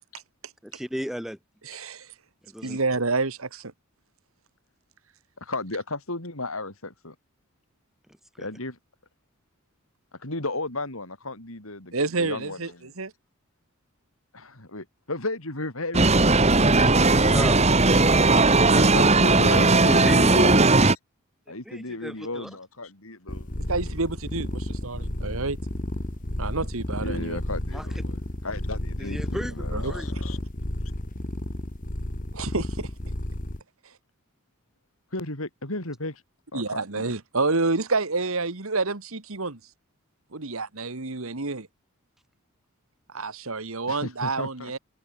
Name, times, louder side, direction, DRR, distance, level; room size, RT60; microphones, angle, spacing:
voice 1, 0.6-1.4 2.5-2.8 16.9-17.8 19.8-20.2 21.6-22.5 27.7-27.9 29.0-30.1, equal, ahead, 4.8 m, -35 dB
voice 2, 1.7-2.1 2.6-3.7 11.9-12.7 13.0-13.1 23.7-25.6 26.4-27.4 29.7-29.9 32.3-32.9 36.5-39.6 40.3-41.7 43.1-44.8, right 3 dB, 70° right, 1.7 m, -28 dB
voice 3, 5.4-7.2 8.4-8.8 10.2-12.9 14.3-16.1 18.2-20.6 20.9-21.0 21.5-23.9 27.0-30.4 35.1-36.2 36.5-37.1 43.9-44.7, left 2 dB, 70° left, 5.3 m, -34 dB
sound 1, 15.9-21.0, right 3 dB, 30° right, 1.9 m, -18 dB
sound 2, 23.3-33.6, left 1 dB, 35° left, 1.6 m, -32 dB
open air
head